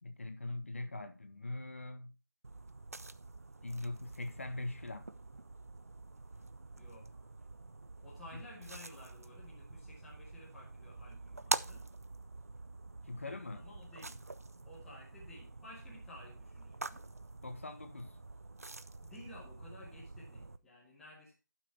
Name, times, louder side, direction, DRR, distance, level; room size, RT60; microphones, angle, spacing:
voice 1, 0.0-2.1 3.6-5.1 8.3-8.4 13.0-13.6 17.4-18.2, left 2 dB, 40° left, 1.1 m, -42 dB
sound 1, 2.4-20.6, right 3 dB, 45° right, 0.6 m, -46 dB
voice 2, 6.8-7.3 8.0-11.9 13.5-14.2 14.6-17.1 19.0-21.3, left 1 dB, ahead, 0.9 m, -54 dB
11.5 x 6.2 x 4.2 m
figure-of-eight pair, 170°, 11 cm